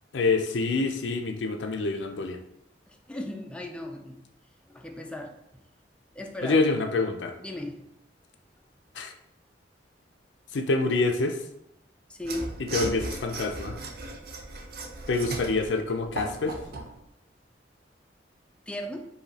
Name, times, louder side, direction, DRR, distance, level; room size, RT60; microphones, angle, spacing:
voice 1, 0.1-2.4 6.4-7.3 9.0-9.1 10.5-11.4 12.7-13.8 15.1-16.5, left 3 dB, 85° left, 6 dB, 0.5 m, -26 dB
voice 2, 2.9-4.2 4.7-5.3 6.1-6.6 7.4-7.8 12.1-12.5 18.7-19.1, left 1 dB, 5° left, 2 dB, 0.4 m, -36 dB
Mechanisms / Sawing, 12.2-16.9, right 3 dB, 60° right, 0.6 m, -36 dB
4.8 x 2.7 x 2.8 m, 0.81 s
head